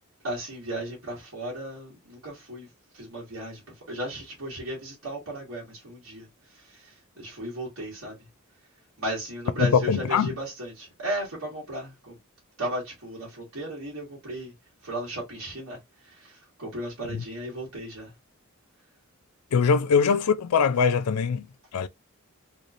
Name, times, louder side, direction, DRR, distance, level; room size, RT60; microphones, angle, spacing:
voice 1, 0.2-3.6 3.9-8.3 9.0-12.2 12.6-14.5 14.8-18.1 19.8-19.9, right 1 dB, 70° right, 2.1 m, -35 dB
voice 2, 9.6-10.3 19.5-21.4 21.7-21.9, left 6 dB, 85° left, 0.4 m, -22 dB
4.0 x 3.2 x 2.5 m
head